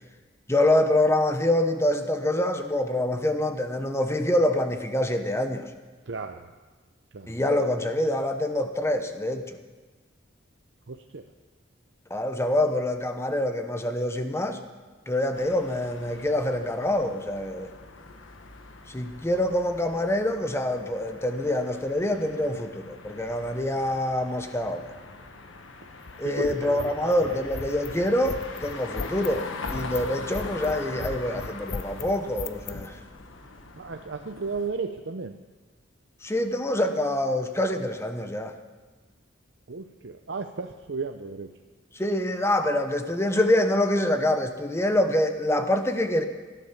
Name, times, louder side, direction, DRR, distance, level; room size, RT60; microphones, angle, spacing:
voice 1, 0.5-5.7 7.3-9.6 12.1-14.6 15.1-17.7 18.9-24.9 26.2-33.0 36.2-38.5 42.0-46.2, left 1 dB, 15° left, 7 dB, 1.0 m, -25 dB
voice 2, 6.1-6.5 7.1-7.3 10.9-11.2 26.2-27.4 33.8-35.4 39.7-41.5, right 4 dB, 70° right, 5 dB, 0.7 m, -34 dB
sound 1, 15.3-34.7, left 3 dB, 90° left, 1.3 m, -42 dB
sound 2, 26.0-32.9, left 4 dB, 70° left, 0.7 m, -36 dB
18.5 x 12.5 x 5.8 m, 1.3 s
head